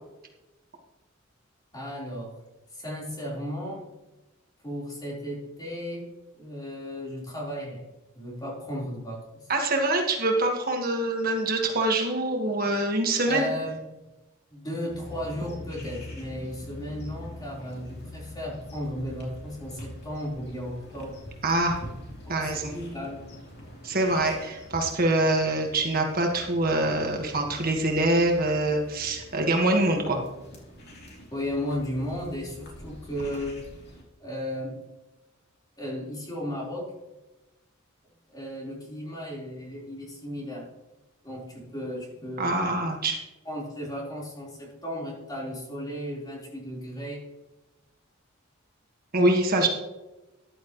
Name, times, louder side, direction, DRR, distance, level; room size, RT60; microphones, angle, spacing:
voice 1, 1.7-2.4 2.7-3.8 4.6-6.0 6.4-7.8 8.1-9.5 13.3-13.8 14.5-21.1 22.2-23.2 31.3-33.7 34.2-34.7 35.8-36.9 38.3-40.6 41.2-42.6 43.5-47.2, equal, 20° left, -4 dB, 4.2 m, -35 dB
voice 2, 9.5-13.5 21.4-21.8 22.3-22.7 23.8-30.2 42.4-43.2 49.1-49.7, right 2 dB, 45° right, 2 dB, 1.6 m, -24 dB
sound 1, 14.9-34.0, left 1 dB, 55° left, 3.1 m, -44 dB
14.0 x 11.0 x 3.1 m, 1.0 s
head